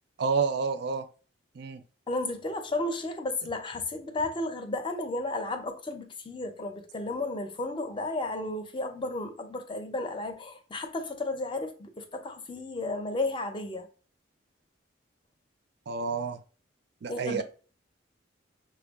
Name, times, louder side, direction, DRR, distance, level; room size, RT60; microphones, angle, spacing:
voice 1, 0.2-1.0 1.6-1.8 15.9-16.4 17.0-17.4, right 5 dB, 60° right, 0.4 m, -29 dB
voice 2, 2.1-13.9 17.1-17.4, left 2 dB, 25° left, 0.6 m, -33 dB
5.9 x 2.3 x 3.5 m
head